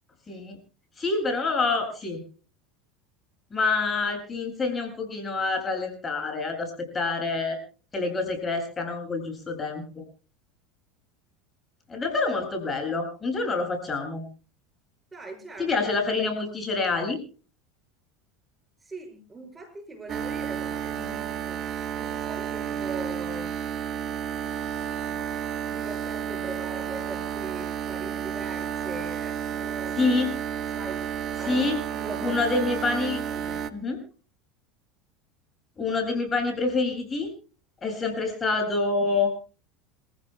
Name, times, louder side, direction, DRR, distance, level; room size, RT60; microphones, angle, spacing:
voice 1, 0.3-0.6 1.0-2.2 3.5-7.6 7.9-10.0 11.9-14.2 15.6-17.2 30.0-30.3 31.5-31.8 32.2-33.2 33.7-34.0 35.8-37.3 37.8-39.3, left 3 dB, 25° left, 4 dB, 7.4 m, -27 dB
voice 2, 15.1-15.7 18.8-21.7 22.0-23.5 25.7-30.1 30.7-31.0 31.4-31.6 31.9-32.4 33.3-33.6, right 3 dB, 15° right, 5 dB, 6.2 m, -40 dB
sound 1, 20.1-33.7, right 8 dB, 45° right, 1.6 m, -31 dB
27.5 x 15.5 x 2.3 m, 0.37 s
hypercardioid pair, 95°, 0 cm